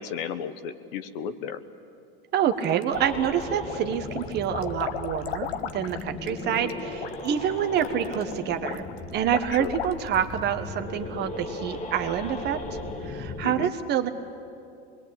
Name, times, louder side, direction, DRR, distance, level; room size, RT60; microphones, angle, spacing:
voice 1, 0.0-1.6 9.5-9.7 13.4-13.7, left 8 dB, 60° left, 10 dB, 1.4 m, -34 dB
voice 2, 2.3-8.8 9.1-12.6 13.0-14.1, right 9 dB, 35° right, 8 dB, 1.4 m, -27 dB
sound 1, 2.4-3.3 3.6-10.3, left 9 dB, 75° left, 1.3 m, -37 dB
sound 2, 2.9-13.5, left 2 dB, 20° left, 1.5 m, -37 dB
25.5 x 21.5 x 8.7 m, 2.6 s
supercardioid pair, 130°, 31 cm